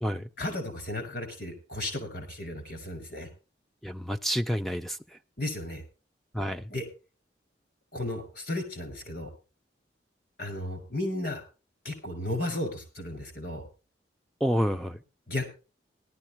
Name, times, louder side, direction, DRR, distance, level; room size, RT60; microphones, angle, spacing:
voice 1, 0.4-3.3 5.4-5.8 6.7-6.9 7.9-9.3 10.4-11.4 11.8-13.7 15.3-15.5, left 1 dB, 55° left, 6.1 m, -34 dB
voice 2, 3.8-5.0 6.3-6.7 14.4-15.0, equal, ahead, 0.5 m, -29 dB
18.5 x 12.5 x 3.0 m
head